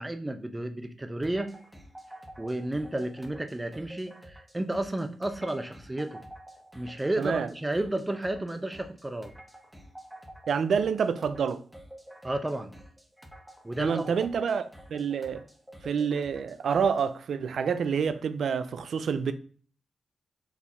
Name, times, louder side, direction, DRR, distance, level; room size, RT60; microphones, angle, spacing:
voice 1, 0.0-1.5 2.4-6.2 6.7-9.3 12.2-12.7 13.6-14.1, right 1 dB, 20° right, 0.7 m, -32 dB
sound 1, 1.2-17.1, right 1 dB, 5° right, 1.2 m, -49 dB
voice 2, 7.2-7.5 10.5-11.6 13.8-14.6 14.9-15.4 15.8-19.3, right 6 dB, 75° right, 0.4 m, -27 dB
4.7 x 2.7 x 3.3 m
supercardioid pair, 45°, 0 cm